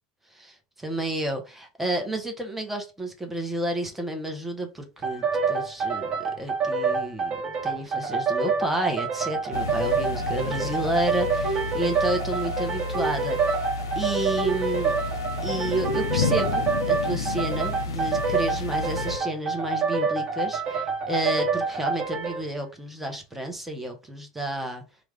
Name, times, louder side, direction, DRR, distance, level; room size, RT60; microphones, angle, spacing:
voice 1, 0.3-6.1 6.4-7.4 7.6-13.4 14.0-14.9 15.4-24.8, right 1 dB, 10° right, 1.0 m, -31 dB
sound 1, 5.0-22.5, right 4 dB, 35° right, 1.2 m, -27 dB
sound 2, 9.5-19.2, left 5 dB, 85° left, 0.5 m, -31 dB
3.3 x 2.4 x 3.4 m
hypercardioid pair, 100°, 2 cm